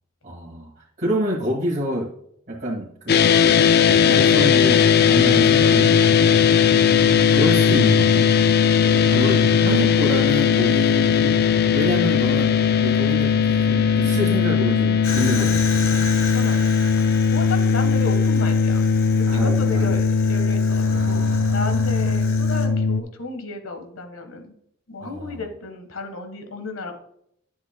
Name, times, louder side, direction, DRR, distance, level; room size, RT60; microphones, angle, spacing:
voice 1, 0.2-2.1 2.5-3.7 4.0-6.5 7.3-8.3 8.9-12.6 12.8-15.7 17.6-17.7 19.3-19.9 20.8-22.1 25.0-25.4, equal, 40° right, -6 dB, 1.8 m, -27 dB
sound 1, 3.1-23.0, left 6 dB, 50° left, 0.4 m, -18 dB
Fire, 15.0-22.7, left 4 dB, 70° left, 1.3 m, -35 dB
voice 2, 16.3-24.5 24.9-27.0, left 3 dB, 90° left, 6 dB, 1.4 m, -34 dB
11.0 x 7.3 x 2.2 m, 0.70 s
head